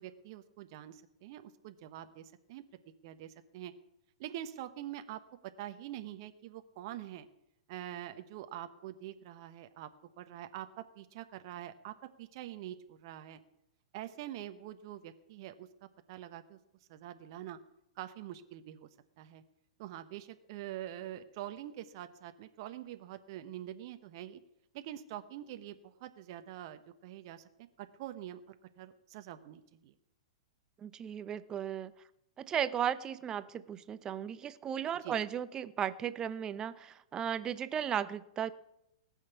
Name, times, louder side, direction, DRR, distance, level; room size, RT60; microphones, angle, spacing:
voice 1, 0.0-2.6 3.0-3.7 4.2-7.3 7.7-9.9 10.2-13.4 13.9-16.6 16.9-17.6 18.0-18.9 19.2-19.4 19.8-24.4 24.7-27.4 27.8-29.9 35.0-35.2, right 12 dB, 45° right, 9 dB, 1.0 m, -45 dB
voice 2, 30.8-31.9 32.4-38.5, right 9 dB, 20° right, 15 dB, 0.8 m, -35 dB
19.5 x 6.5 x 8.2 m, 0.84 s
figure-of-eight pair, 105°, 3 cm